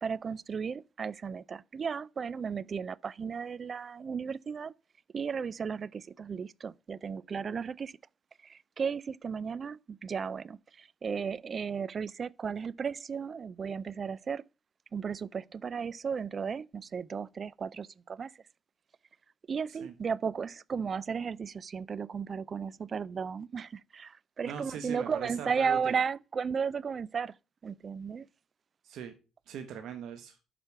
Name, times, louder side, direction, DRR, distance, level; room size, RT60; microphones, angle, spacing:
voice 1, 0.0-4.7 5.1-7.9 8.4-14.4 14.9-18.3 19.5-27.4 27.6-28.3, right 6 dB, 45° right, 0.4 m, -34 dB
voice 2, 24.4-25.9 28.8-29.1 29.5-30.4, right 8 dB, 75° right, 1.0 m, -40 dB
7.2 x 5.0 x 5.8 m
supercardioid pair, 70°, 0 cm